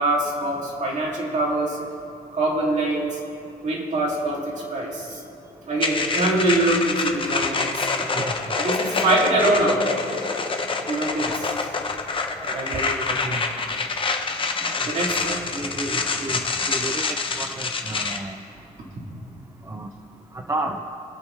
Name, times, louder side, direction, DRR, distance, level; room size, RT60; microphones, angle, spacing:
voice 1, 0.0-1.8 2.3-3.2 3.6-5.2 5.7-7.9 8.6-9.8 10.9-11.5 12.5-13.0 14.8-15.4 15.9-16.0 19.0-19.1, right 2 dB, 50° right, -3 dB, 2.8 m, -24 dB
sound 1, 5.8-18.2, left 4 dB, 35° left, 0.9 m, -26 dB
voice 2, 8.1-8.6 10.8-11.2 12.4-13.8 14.6-14.9 15.5-18.4 19.7-19.9 20.3-20.8, right 2 dB, 20° right, 4 dB, 0.6 m, -32 dB
25.5 x 8.6 x 3.4 m, 2.7 s
cardioid pair, 140°, 16 cm